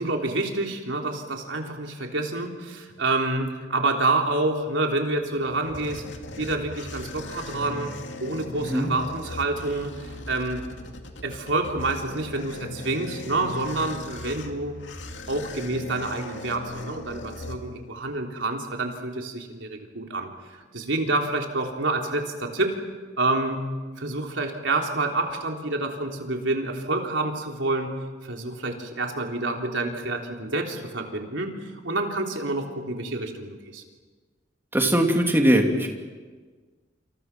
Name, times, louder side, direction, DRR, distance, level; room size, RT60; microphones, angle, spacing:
voice 1, 0.0-6.1 6.4-10.6 11.2-14.8 15.3-22.8 23.2-23.7 24.0-27.9 28.2-31.5 31.8-33.8, right 2 dB, 85° right, 2 dB, 3.6 m, -28 dB
sound 1, 5.3-18.1, left 2 dB, 80° left, 2.4 m, -39 dB
voice 2, 34.7-35.9, right 1 dB, 10° right, 2 dB, 2.9 m, -20 dB
28.5 x 27.5 x 6.1 m, 1.4 s
head